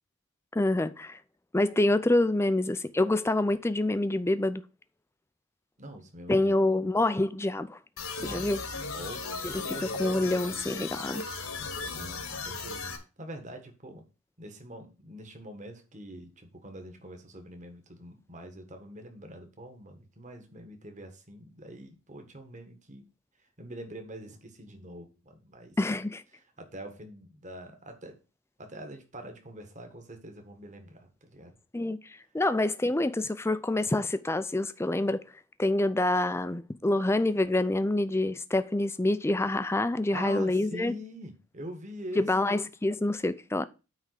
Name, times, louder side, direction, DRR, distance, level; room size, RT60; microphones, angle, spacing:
voice 1, 0.5-1.2 1.5-4.6 6.3-7.8 8.2-8.6 9.5-11.2 25.8-26.2 31.7-32.0 32.3-35.2 35.6-40.9 42.2-43.6, left 2 dB, 10° left, 0.4 m, -27 dB
voice 2, 5.8-6.6 8.2-8.5 8.9-10.2 11.9-14.0 14.4-23.0 23.6-25.8 26.3-28.2 28.6-31.6 40.1-42.5, equal, 35° right, 1.5 m, -44 dB
sound 1, 8.0-13.0, left 4 dB, 75° left, 1.6 m, -36 dB
9.0 x 3.6 x 6.6 m
head